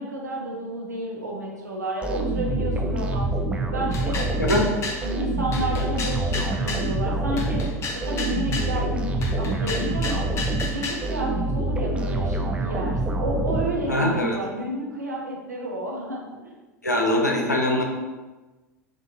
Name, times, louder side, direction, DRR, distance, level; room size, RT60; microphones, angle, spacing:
voice 1, 0.0-3.3 3.7-4.4 4.8-7.6 8.0-10.3 10.7-16.5, right 1 dB, 85° right, -2 dB, 0.8 m, -31 dB
sound 1, 2.0-14.2, right 2 dB, 10° right, 0.4 m, -26 dB
sound 2, 3.9-5.0 5.5-6.9 7.4-8.7 9.2-11.1, left 3 dB, 30° left, 0.6 m, -32 dB
voice 2, 4.4-4.7 13.9-14.4 16.8-17.8, left 1 dB, 90° left, 1 dB, 0.6 m, -22 dB
4.5 x 2.5 x 2.5 m, 1.2 s
figure-of-eight pair, 80°, 9 cm